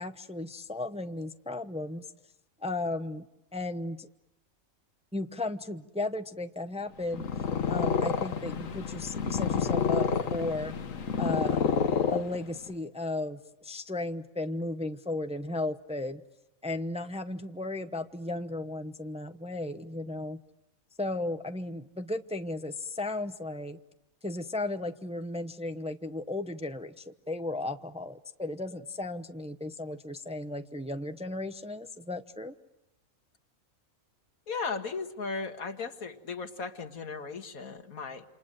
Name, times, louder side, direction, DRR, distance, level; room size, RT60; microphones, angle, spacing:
voice 1, 0.0-2.1 2.6-3.3 3.5-4.1 5.1-7.2 7.7-10.7 11.2-11.6 12.1-16.2 16.6-20.4 21.0-23.8 24.2-32.5, left 2 dB, 5° right, 8 dB, 0.7 m, -35 dB
Purr, 7.0-12.7, left 6 dB, 70° left, 1.7 m, -29 dB
voice 2, 34.5-38.2, left 4 dB, 90° left, 6 dB, 2.1 m, -36 dB
28.5 x 27.5 x 7.7 m, 0.90 s
omnidirectional pair, 1.5 m